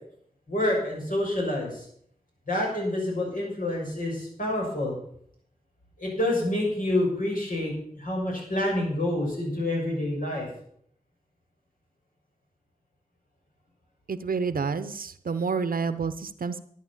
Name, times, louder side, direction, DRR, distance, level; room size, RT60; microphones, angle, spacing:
voice 1, 0.5-1.9 2.5-4.9 6.0-10.5, left 1 dB, 65° left, -2 dB, 6.6 m, -28 dB
voice 2, 14.1-16.6, right 5 dB, 70° right, 12 dB, 0.8 m, -29 dB
11.5 x 9.1 x 7.3 m, 0.66 s
wide cardioid pair, 50°, 15 cm